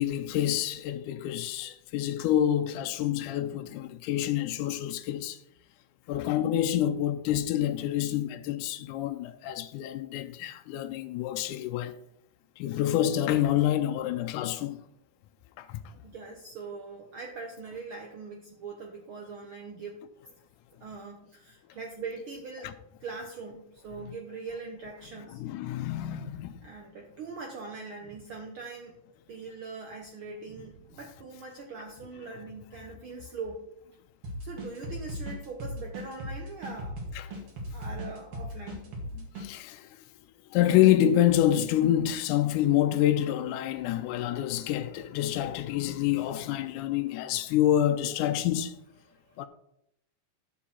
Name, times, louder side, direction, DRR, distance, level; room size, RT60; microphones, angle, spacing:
voice 1, 0.0-5.4 6.1-12.0 12.6-14.8 15.6-15.8 25.4-26.5 37.2-37.3 39.2-39.9 40.5-48.8 49.4-49.5, left 11 dB, 80° left, 2.0 m, -27 dB
voice 2, 16.0-20.0 20.8-22.7 23.0-25.4 26.6-29.0 29.3-33.6 34.4-37.0 37.7-38.9 47.2-47.3 49.1-49.5, right 4 dB, 75° right, 1.2 m, -42 dB
sound 1, 34.2-39.5, equal, 50° right, 2.5 m, -37 dB
11.0 x 7.0 x 4.3 m
omnidirectional pair, 3.7 m